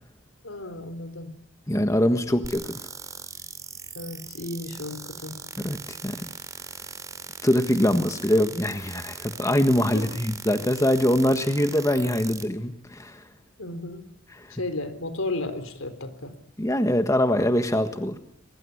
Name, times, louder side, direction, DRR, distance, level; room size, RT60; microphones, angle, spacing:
voice 1, 0.4-1.3 4.0-5.4 7.9-8.1 9.9-10.1 13.6-14.1 14.5-16.3, left 2 dB, 80° left, 10 dB, 3.8 m, -34 dB
voice 2, 1.7-2.8 5.6-6.2 7.4-13.2 14.4-14.5 16.6-18.2, left 1 dB, 15° left, 7 dB, 1.5 m, -23 dB
sound 1, 2.4-12.4, right 5 dB, 15° right, 2.8 m, -40 dB
23.0 x 22.5 x 10.0 m, 0.70 s
head